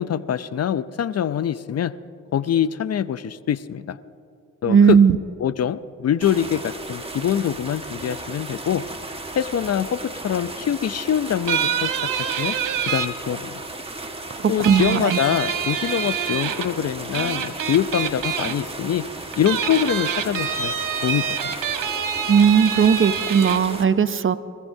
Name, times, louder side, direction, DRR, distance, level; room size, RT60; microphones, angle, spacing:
voice 1, 0.0-2.0 2.3-4.0 4.6-5.0 5.4-8.8 9.4-12.6 12.9-13.6 14.5-19.1 19.4-20.7 21.0-21.5, left 9 dB, 50° left, 16 dB, 0.5 m, -24 dB
voice 2, 4.7-5.2 14.6-15.2 22.3-24.4, right 7 dB, 40° right, 13 dB, 0.6 m, -16 dB
sound 1, 6.2-23.8, right 2 dB, 15° right, 1.4 m, -35 dB
sound 2, 11.5-13.1 14.6-16.7 17.1-18.5 19.3-23.6, right 8 dB, 70° right, 1.1 m, -26 dB
24.0 x 14.5 x 2.7 m, 2.8 s
cardioid pair, 60°, 33 cm